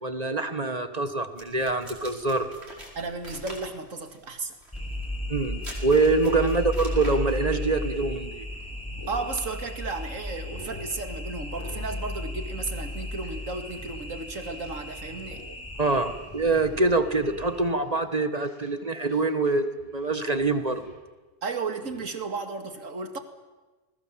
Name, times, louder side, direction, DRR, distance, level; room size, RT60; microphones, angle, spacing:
voice 1, 0.0-2.5 5.3-8.5 15.8-20.8, right 3 dB, 30° right, 9 dB, 1.6 m, -25 dB
sound 1, 1.4-7.5, right 1 dB, 55° right, 5.3 m, -44 dB
voice 2, 3.0-4.6 6.4-6.5 9.1-15.4 21.4-23.2, right 3 dB, 80° right, 7 dB, 2.5 m, -34 dB
sound 2, 4.7-17.6, left 1 dB, 10° left, 7.5 m, -35 dB
sound 3, 6.8-9.9 10.2-10.9 11.5-12.1 12.3-14.8 15.0-15.5 15.7-16.0 16.4-17.0 17.4-19.5 19.8-21.0 21.9-22.1, left 2 dB, 75° left, 8.1 m, -47 dB
28.5 x 20.5 x 7.6 m, 1.2 s
omnidirectional pair, 1.3 m